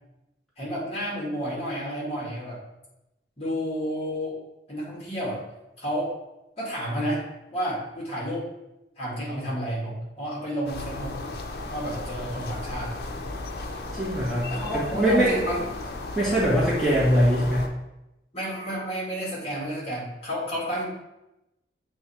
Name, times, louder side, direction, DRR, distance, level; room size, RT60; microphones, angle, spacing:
voice 1, 0.6-2.6 3.4-4.4 4.7-5.4 5.8-6.1 6.6-7.2 7.5-8.5 9.0-11.2 11.7-12.9 14.5-15.6 18.3-20.9, equal, 35° left, -4 dB, 1.9 m, -30 dB
sound 1, 10.7-17.7, left 2 dB, 60° left, 0.7 m, -35 dB
voice 2, 13.9-15.3 16.1-17.6, equal, ahead, -9 dB, 1.4 m, -22 dB
7.5 x 3.3 x 4.4 m, 0.94 s
head